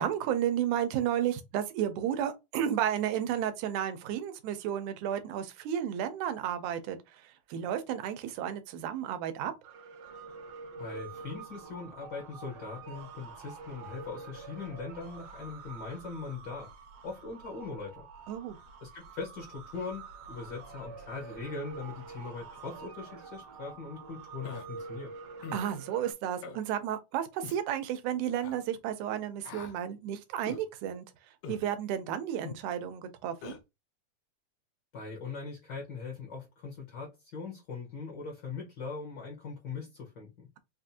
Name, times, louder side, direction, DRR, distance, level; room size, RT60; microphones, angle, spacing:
voice 1, 0.0-7.0 7.5-9.5 18.3-18.6 25.5-31.1 31.5-33.6, right 10 dB, 85° right, 2.1 m, -32 dB
sound 1, 9.6-26.1, right 4 dB, 70° right, 1.6 m, -47 dB
voice 2, 10.8-16.7 17.0-18.0 18.8-25.1 34.9-40.5, left 4 dB, 60° left, 1.2 m, -41 dB
Human voice, 24.4-24.7 25.4-25.7 26.4-26.6 27.4-27.6 28.4-28.6 29.4-29.7 30.5-30.6 31.4-31.6 32.4-32.6 33.4-33.6, left 7 dB, 75° left, 1.7 m, -42 dB
5.3 x 2.5 x 2.7 m
omnidirectional pair, 3.5 m